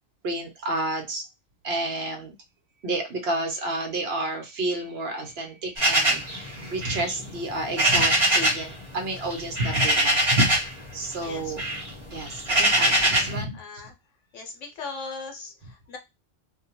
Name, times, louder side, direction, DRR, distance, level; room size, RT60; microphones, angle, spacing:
voice 1, 0.2-1.2 1.6-2.4 2.8-10.6 10.9-11.6 12.1-13.6, right 2 dB, 60° right, 3 dB, 0.9 m, -30 dB
sound 1, 5.8-8.7 9.0-10.8 11.1-13.4, right 1 dB, 25° right, 0.9 m, -23 dB
voice 2, 11.2-11.5 12.2-12.3 13.6-13.9 14.3-16.0, left 4 dB, 70° left, 2 dB, 1.2 m, -39 dB
2.6 x 2.3 x 2.8 m, 0.22 s
omnidirectional pair, 1.3 m